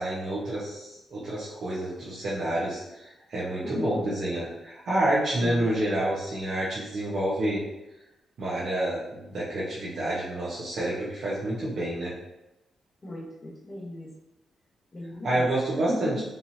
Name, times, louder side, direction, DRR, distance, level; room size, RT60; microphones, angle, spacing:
voice 1, 0.0-7.6 8.4-12.1 15.2-16.2, right 1 dB, 65° right, -8 dB, 1.2 m, -28 dB
voice 2, 3.6-4.1 5.4-5.7 13.0-14.1 14.9-15.5 15.9-16.2, left 1 dB, 35° left, -3 dB, 1.3 m, -35 dB
4.5 x 3.5 x 2.8 m, 0.94 s
cardioid pair, 90°, 0 cm